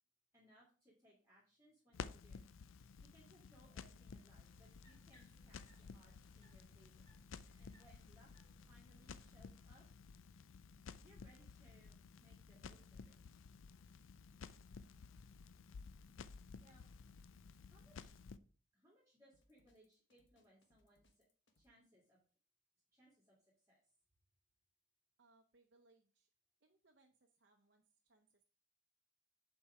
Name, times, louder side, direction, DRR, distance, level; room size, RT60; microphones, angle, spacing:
voice 1, 0.3-2.4 2.7-8.3 8.7-9.8 11.0-13.2 16.3-16.9 17.6-18.2 18.7-21.2 21.6-22.2 22.9-23.8, equal, 15° right, -6 dB, 2.0 m, -69 dB
Crackle, 1.9-18.4, left 5 dB, 85° left, 0.5 m, -55 dB
sound 1, 4.4-9.5, equal, 20° left, 1.8 m, -68 dB
Drum kit, 19.3-21.7, left 1 dB, 70° left, 1.3 m, -76 dB
voice 2, 25.2-26.3 26.6-28.4, right 3 dB, 60° right, 3 dB, 0.8 m, -73 dB
7.3 x 4.6 x 4.8 m, 0.39 s
head